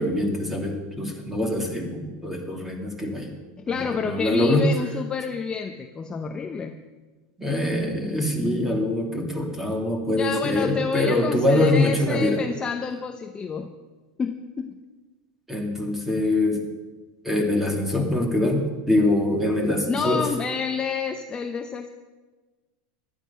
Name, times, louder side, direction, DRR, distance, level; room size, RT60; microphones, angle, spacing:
voice 1, 0.0-3.3 3.7-4.7 7.4-12.4 15.5-16.6 17.2-20.2, left 1 dB, 5° right, 2 dB, 2.6 m, -24 dB
voice 2, 3.7-6.8 10.1-13.7 14.2-14.8 16.2-16.4 19.9-21.9, left 6 dB, 20° left, 5 dB, 0.7 m, -29 dB
14.5 x 11.5 x 5.7 m, 1.3 s
supercardioid pair, 135°, 5 cm